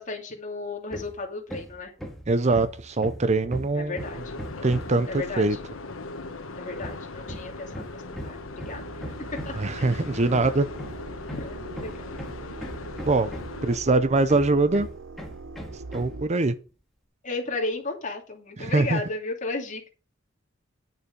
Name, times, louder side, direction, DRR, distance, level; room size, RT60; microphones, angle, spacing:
voice 1, 0.0-1.9 3.7-4.4 5.1-5.5 6.5-9.0 9.4-10.0 11.3-12.2 17.2-19.9, left 3 dB, 40° left, 2.8 m, -34 dB
Hammer, 0.9-1.2 1.5-5.1 6.8-13.7 14.3-16.2, equal, ahead, 1.9 m, -39 dB
voice 2, 2.3-4.0 4.6-5.1 5.4-5.6 9.6-10.7 13.0-13.3 13.6-14.9 15.9-16.5 18.6-19.0, right 3 dB, 35° right, 0.6 m, -22 dB
sound 1, 4.0-13.8, left 3 dB, 90° left, 1.2 m, -39 dB
sound 2, 8.2-16.3, right 3 dB, 70° right, 0.9 m, -42 dB
10.5 x 6.8 x 5.3 m
head